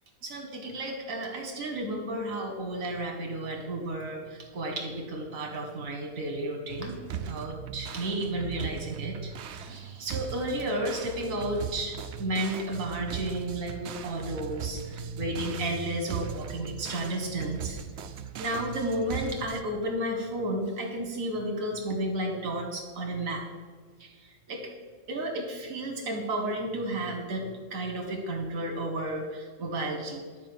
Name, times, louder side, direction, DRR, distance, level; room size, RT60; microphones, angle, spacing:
voice 1, 0.2-7.0 7.3-17.8 18.4-23.4 24.0-24.1 24.5-24.6 25.1-30.2, right 1 dB, 80° right, 2 dB, 1.6 m, -32 dB
sound 1, 6.7-19.6, right 8 dB, 65° right, 0.9 m, -39 dB
10.5 x 4.8 x 7.7 m, 1.5 s
omnidirectional pair, 1.4 m